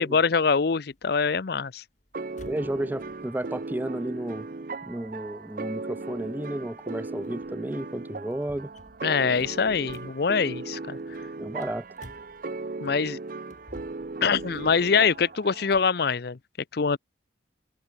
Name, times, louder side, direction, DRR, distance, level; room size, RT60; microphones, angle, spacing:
voice 1, 0.0-1.8 9.0-11.0 12.8-13.2 14.2-16.4 16.7-17.0, left 5 dB, 55° left, 0.6 m, -24 dB
sound 1, 0.9-12.9 13.4-16.0, equal, 40° left, 8.0 m, -54 dB
sound 2, 2.1-15.9, right 3 dB, 45° right, 0.7 m, -37 dB
voice 2, 2.5-4.5 4.8-8.7 11.4-11.8, right 1 dB, 10° right, 0.4 m, -32 dB
head